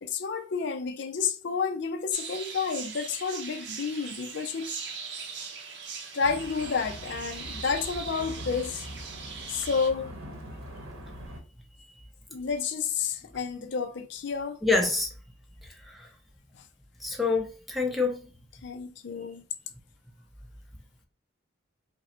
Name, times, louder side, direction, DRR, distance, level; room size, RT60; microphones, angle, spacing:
voice 1, 0.0-4.7 6.1-8.9 9.5-10.1 12.3-14.6 16.5-16.6 18.6-19.4, left 5 dB, 55° left, 0.4 m, -30 dB
sound 1, 2.1-9.9, right 5 dB, 55° right, 0.6 m, -40 dB
sound 2, 6.2-11.4, equal, 90° right, 1.0 m, -42 dB
voice 2, 14.6-15.1 15.9-16.1 17.0-18.2, left 3 dB, ahead, 0.6 m, -26 dB
5.1 x 2.0 x 2.8 m
head